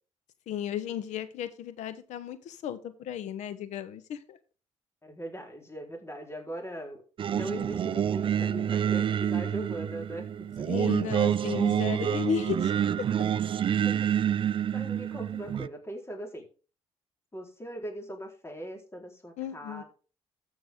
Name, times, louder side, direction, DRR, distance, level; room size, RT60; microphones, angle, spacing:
voice 1, 0.5-4.4 10.7-12.7 19.4-19.8, left 9 dB, 80° left, 12 dB, 1.1 m, -34 dB
voice 2, 5.0-10.3 10.6-10.7 13.7-14.0 14.6-16.4 17.3-19.8, right 1 dB, 20° left, 2 dB, 4.2 m, -40 dB
Singing, 7.2-15.7, right 9 dB, 45° right, 0.4 m, -28 dB
14.0 x 6.3 x 3.7 m, 0.37 s
supercardioid pair, 65°, 12 cm